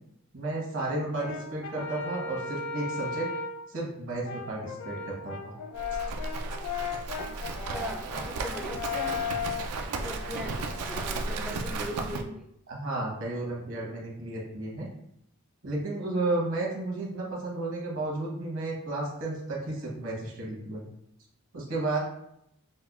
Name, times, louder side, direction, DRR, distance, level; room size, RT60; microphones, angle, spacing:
voice 1, 0.3-3.3 3.7-5.6 12.7-14.9 15.6-20.8 21.5-22.0, right 2 dB, 60° right, -2 dB, 1.0 m, -32 dB
Brass instrument, 1.1-3.7 4.2-11.2, left 5 dB, 85° left, 0.5 m, -36 dB
Livestock farm animals working animals, 5.8-12.2, right 3 dB, 90° right, 0.4 m, -34 dB
voice 2, 7.5-9.6 10.0-12.5, equal, ahead, 0 dB, 0.4 m, -40 dB
5.2 x 2.2 x 2.3 m, 0.76 s
head